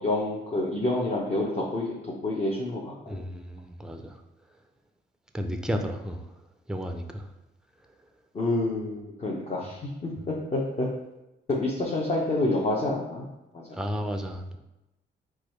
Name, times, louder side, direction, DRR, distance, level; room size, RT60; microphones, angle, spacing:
voice 1, 0.0-3.2 8.3-10.9 11.5-13.3 13.5-13.8, left 2 dB, 35° left, -3 dB, 0.8 m, -28 dB
voice 2, 3.1-4.2 5.3-6.2 6.7-7.3 13.7-14.6, equal, 5° right, 5 dB, 0.5 m, -33 dB
4.8 x 2.3 x 4.4 m, 0.96 s
cardioid pair, 90°, 20 cm